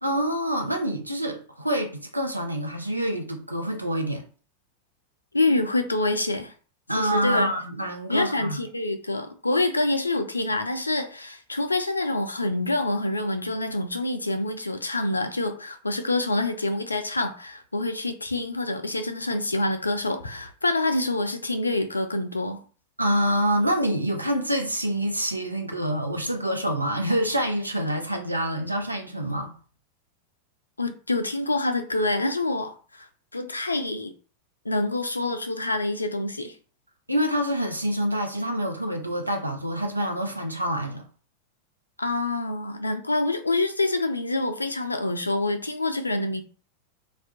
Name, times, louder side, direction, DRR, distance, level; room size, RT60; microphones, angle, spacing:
voice 1, 0.0-4.2 6.9-8.6 23.0-29.5 37.1-41.1, equal, 85° right, 0.4 m, -26 dB
voice 2, 5.3-6.5 7.0-7.5 8.1-22.6 30.8-33.1 33.3-34.1 34.7-36.5 42.0-46.4, left 2 dB, 80° left, 0.3 m, -26 dB
2.2 x 2.1 x 2.7 m
figure-of-eight pair, 90°, 0 cm